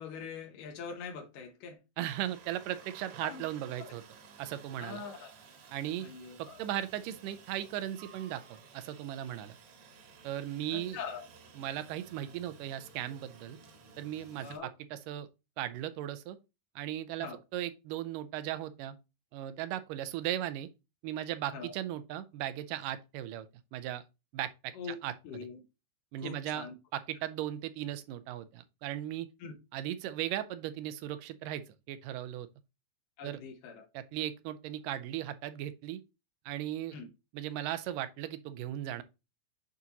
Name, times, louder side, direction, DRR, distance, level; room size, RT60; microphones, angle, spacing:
voice 1, 0.0-1.8 3.2-3.4 3.8-3.9 4.8-5.3 6.0-6.6 10.7-11.3 14.3-14.7 17.2-17.4 21.5-21.7 24.7-25.0 25.2-25.6 26.2-26.7 29.4-29.5 33.2-33.9 36.9-37.1, left 6 dB, 80° left, 2.7 m, -43 dB
voice 2, 2.0-4.0 4.4-5.0 5.7-6.1 6.4-9.6 10.2-11.0 11.6-13.6 14.0-15.3 15.6-16.4 16.8-19.0 19.3-20.7 21.0-23.5 23.7-24.0 24.3-25.5 26.1-26.7 26.9-29.3 29.7-32.5 33.2-33.4 33.9-36.0 36.5-37.0 37.3-39.0, right 12 dB, 85° right, 2.3 m, -37 dB
Aircraft, 2.1-14.6, right 5 dB, 65° right, 2.4 m, -55 dB
8.6 x 4.1 x 2.9 m
omnidirectional pair, 3.7 m